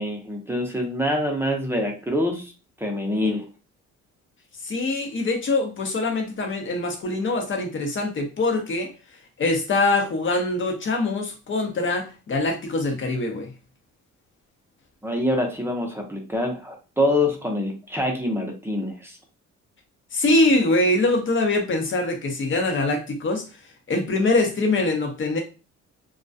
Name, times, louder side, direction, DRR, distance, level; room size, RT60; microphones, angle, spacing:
voice 1, 0.0-2.5 2.8-3.5 15.0-19.2, left 1 dB, 10° right, 0.6 m, -25 dB
voice 2, 4.6-8.9 9.4-13.5 20.1-23.5 23.9-25.4, left 2 dB, 40° left, 0.7 m, -23 dB
2.2 x 2.2 x 2.5 m
cardioid pair, 90°, 30 cm